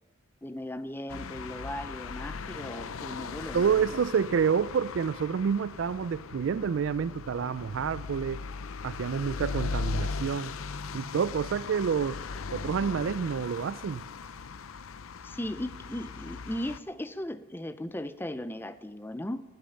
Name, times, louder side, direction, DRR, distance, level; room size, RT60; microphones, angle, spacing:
voice 1, 0.4-3.9 15.2-19.4, left 1 dB, 10° left, 0.5 m, -37 dB
sound 1, 1.1-16.8, left 4 dB, 80° left, 0.6 m, -38 dB
voice 2, 3.5-8.4 8.8-10.5 10.9-12.2 12.5-14.0, right 6 dB, 65° right, 0.3 m, -28 dB
13.0 x 8.4 x 8.8 m
head